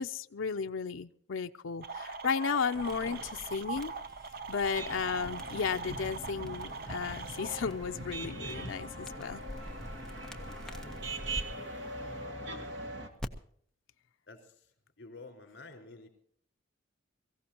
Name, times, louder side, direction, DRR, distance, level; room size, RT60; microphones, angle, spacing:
voice 1, 0.0-3.9 4.5-9.4, left 5 dB, 85° left, 7 dB, 0.5 m, -34 dB
sound 1, 1.8-7.7, right 4 dB, 50° right, 0.7 m, -42 dB
sound 2, 2.7-11.4 13.2-13.3, equal, 5° left, 0.9 m, -47 dB
sound 3, 4.7-13.1, right 1 dB, 70° right, 2.0 m, -41 dB
voice 2, 14.3-14.7 15.0-16.1, left 3 dB, 60° left, 4 dB, 4.4 m, -50 dB
23.0 x 15.5 x 2.9 m, 0.63 s
head